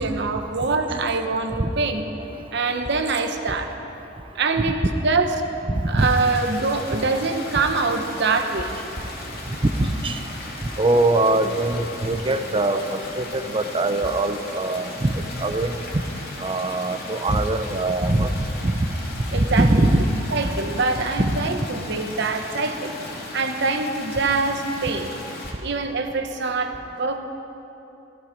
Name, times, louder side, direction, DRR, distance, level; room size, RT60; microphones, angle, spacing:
voice 1, 0.0-2.0 2.5-3.7 4.3-5.3 5.8-8.8 19.3-19.8 20.3-22.9 23.3-25.1 25.6-27.2, right 3 dB, 60° right, 6 dB, 1.1 m, -24 dB
voice 2, 5.7-6.1 9.8-10.2 10.8-15.7 16.4-18.3 18.6-18.8 19.3-20.0 21.2-21.3, right 2 dB, 25° right, 9 dB, 0.6 m, -22 dB
sound 1, 6.0-25.5, left 2 dB, 50° left, 2.4 m, -37 dB
15.0 x 15.0 x 5.3 m, 2.9 s
head